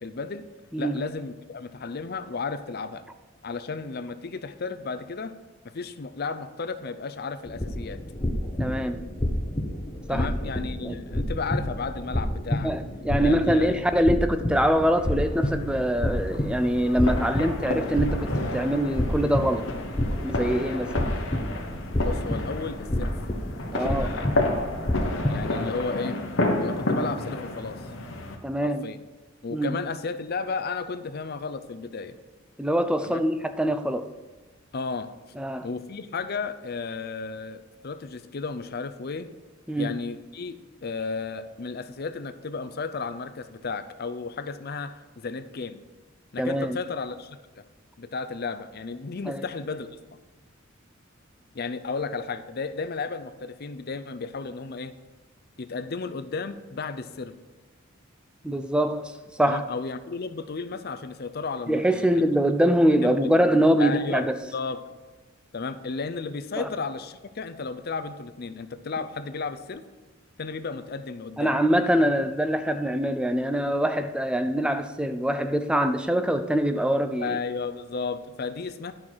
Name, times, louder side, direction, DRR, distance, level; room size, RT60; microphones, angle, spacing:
voice 1, 0.0-0.5 0.8-3.0 3.4-5.3 5.6-8.0 10.1-12.7 13.2-13.8 22.0-23.1 23.7-24.4 25.3-26.2 26.6-27.8 28.6-29.0 29.4-32.2 33.0-33.2 34.7-35.1 35.6-39.3 39.8-45.8 46.3-47.6 48.0-49.9 51.5-54.9 55.6-57.3 59.5-62.2 63.0-63.1 63.8-64.8 65.5-69.8 70.4-71.5 77.2-78.9, left 4 dB, 50° left, 10 dB, 0.5 m, -33 dB
sound 1, 7.4-25.7, left 1 dB, 20° left, 0.8 m, -30 dB
voice 2, 8.6-9.1 10.1-10.3 10.8-11.0 12.6-19.7 20.2-21.1 23.7-24.1 28.4-28.9 29.5-29.7 32.6-34.1 35.4-35.7 39.7-40.0 46.4-46.8 49.3-49.4 58.4-59.6 61.7-64.4 66.6-66.7 71.4-77.4, equal, 5° right, 9 dB, 0.4 m, -24 dB
sound 2, 14.9-28.4, left 2 dB, 70° left, 1.2 m, -31 dB
11.0 x 5.8 x 4.7 m, 1.3 s
head